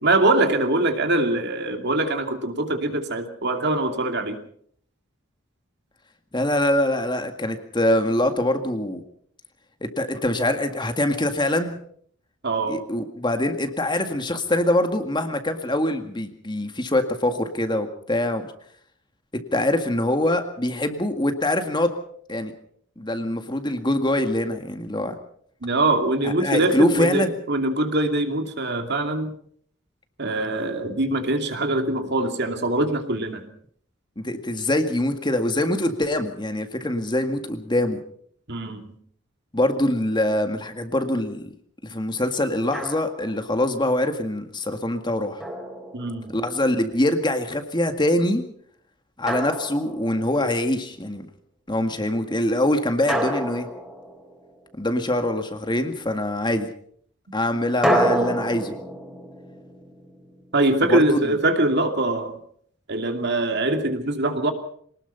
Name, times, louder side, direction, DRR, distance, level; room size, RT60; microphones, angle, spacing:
voice 1, 0.0-4.4 12.4-12.8 25.6-29.3 30.2-33.5 38.5-38.9 45.9-46.3 60.5-62.4 62.9-64.5, right 2 dB, 55° right, 6 dB, 2.7 m, -23 dB
voice 2, 6.3-9.0 9.8-11.8 12.7-18.4 19.5-21.9 22.3-22.5 23.0-25.1 26.2-27.3 34.2-38.0 39.5-41.4 41.8-45.4 46.3-48.4 49.2-51.3 51.7-53.7 54.8-56.7 57.3-58.8 60.9-61.2, left 1 dB, 20° left, 6 dB, 1.9 m, -24 dB
Drum, 42.7-43.4 45.4-46.5 49.3-50.4 53.1-54.7 57.8-60.8, right 1 dB, 5° right, 4.2 m, -28 dB
24.0 x 19.5 x 5.6 m, 0.62 s
head